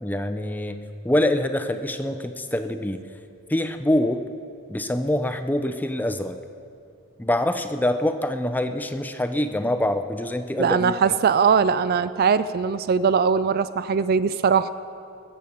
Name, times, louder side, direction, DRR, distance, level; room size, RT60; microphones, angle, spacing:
voice 1, 0.0-3.0 3.5-4.3 4.7-6.4 7.2-11.0, left 1 dB, 10° left, 9 dB, 0.5 m, -25 dB
voice 2, 10.6-14.7, right 6 dB, 45° right, 14 dB, 0.3 m, -20 dB
21.0 x 7.5 x 7.1 m, 2.6 s
head